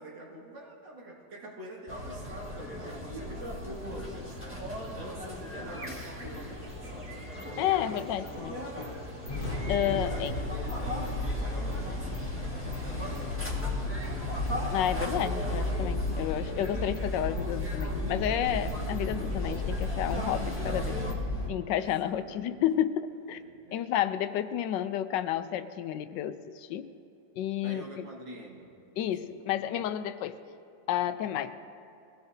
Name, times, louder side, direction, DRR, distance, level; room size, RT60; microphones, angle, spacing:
voice 1, 0.0-7.1 9.8-14.1 15.0-15.2 21.7-22.6 23.3-23.9 27.6-29.3 31.4-31.5, right 1 dB, 80° right, -1 dB, 2.6 m, -47 dB
sound 1, 1.9-21.1, equal, 5° right, 1.5 m, -38 dB
sound 2, 3.8-10.2, right 1 dB, 25° right, 3.4 m, -50 dB
voice 2, 7.6-8.6 9.7-10.3 14.7-21.0 21.5-23.4 23.7-26.9 27.3-28.0 29.0-30.4 30.9-31.5, left 11 dB, 75° left, 11 dB, 1.2 m, -31 dB
sound 3, 9.3-21.5, left 2 dB, 50° left, 1.6 m, -33 dB
22.0 x 16.5 x 2.7 m, 2.7 s
omnidirectional pair, 2.0 m